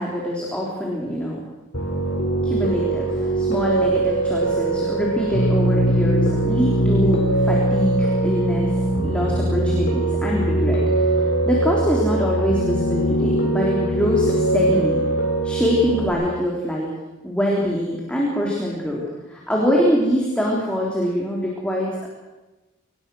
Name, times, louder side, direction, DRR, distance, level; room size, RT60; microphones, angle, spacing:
voice 1, 0.0-1.4 2.4-8.7 9.0-11.1 11.4-15.0 15.4-16.9 17.2-22.1, equal, 5° left, -3 dB, 3.5 m, -24 dB
Piano, 1.7-16.1, right 1 dB, 75° left, 4.8 m, -21 dB
24.5 x 19.5 x 6.3 m, 1.1 s
head